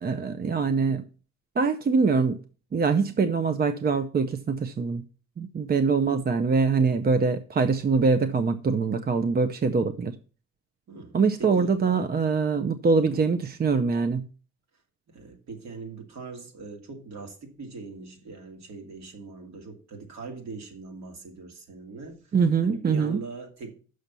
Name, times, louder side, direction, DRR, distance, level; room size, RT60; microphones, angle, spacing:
voice 1, 0.0-1.0 1.6-2.4 2.7-5.0 5.4-10.2 11.1-14.3 22.3-23.2, right 5 dB, 30° right, 0.6 m, -24 dB
voice 2, 10.9-11.8 13.0-13.2 15.1-22.3 22.6-23.7, right 4 dB, 65° right, 2.5 m, -41 dB
6.4 x 5.9 x 6.8 m
cardioid pair, 90°, 30 cm